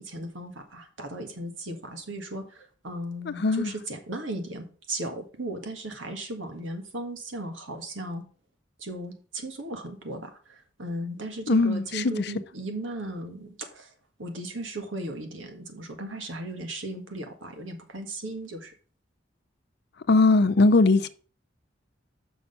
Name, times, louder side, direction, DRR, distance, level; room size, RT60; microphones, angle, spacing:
voice 1, 0.0-8.2 8.8-13.9 14.2-18.7, right 1 dB, 90° right, 1.7 m, -36 dB
voice 2, 3.3-3.7 11.5-12.2 20.1-21.1, left 3 dB, 60° left, 0.6 m, -20 dB
6.4 x 5.8 x 5.6 m
head